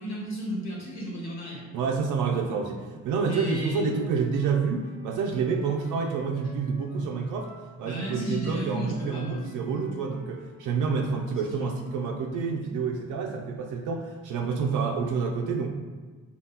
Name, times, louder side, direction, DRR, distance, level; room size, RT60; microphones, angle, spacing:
voice 1, 0.0-1.6 3.3-4.0 7.8-9.5 11.4-11.7, equal, 60° left, -4 dB, 1.4 m, -34 dB
voice 2, 1.7-7.5 7.8-15.7, right 5 dB, 80° right, 2 dB, 0.4 m, -28 dB
Wind instrument woodwind instrument, 3.7-12.2, left 1 dB, 30° left, 0.7 m, -52 dB
4.1 x 2.3 x 3.5 m, 1.4 s
cardioid pair, 90°, 30 cm